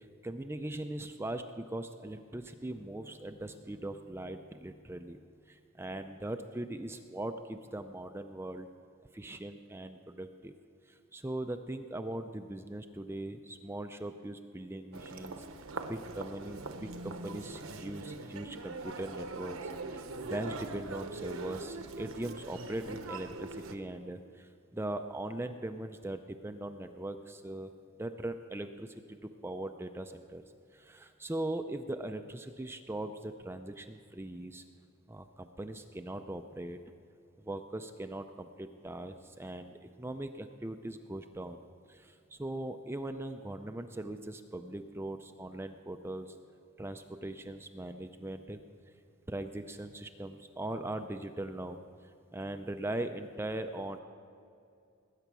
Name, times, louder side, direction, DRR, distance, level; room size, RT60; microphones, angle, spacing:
voice 1, 0.0-5.2 5.5-8.7 9.1-10.5 10.9-15.4 15.8-27.7 28.0-30.4 30.7-34.6 35.1-36.8 37.4-41.6 41.9-46.4 46.8-48.6 49.3-51.8 52.3-54.0, right 1 dB, 10° right, 7 dB, 0.4 m, -40 dB
Human voice, 14.9-23.8, right 3 dB, 70° right, 1.0 m, -42 dB
20.0 x 9.3 x 6.1 m, 2.5 s
head